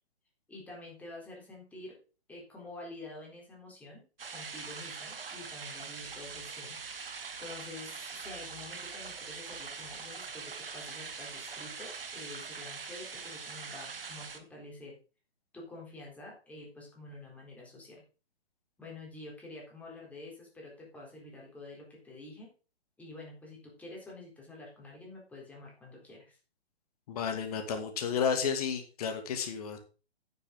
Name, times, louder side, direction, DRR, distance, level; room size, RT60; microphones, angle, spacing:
voice 1, 0.5-2.0 2.3-6.8 7.4-14.9 15.5-18.0 18.8-22.5 23.0-26.4, left 2 dB, 5° left, -3 dB, 4.0 m, -48 dB
sound 1, 4.2-14.4, right 5 dB, 60° right, 1.7 m, -43 dB
voice 2, 27.1-29.8, left 6 dB, 35° left, 6 dB, 2.4 m, -32 dB
10.5 x 9.5 x 3.8 m, 0.33 s
figure-of-eight pair, 125°, 32 cm